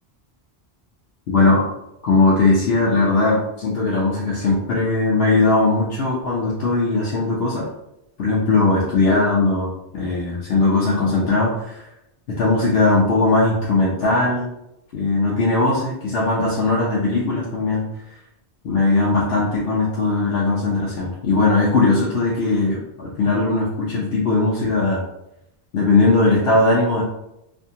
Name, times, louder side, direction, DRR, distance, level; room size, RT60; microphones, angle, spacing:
voice 1, 1.3-1.6 2.0-7.7 8.2-11.9 12.3-14.5 14.9-17.8 18.6-25.0 25.7-27.0, left 3 dB, 65° left, -5 dB, 0.8 m, -19 dB
2.5 x 2.3 x 2.7 m, 0.84 s
omnidirectional pair, 1.1 m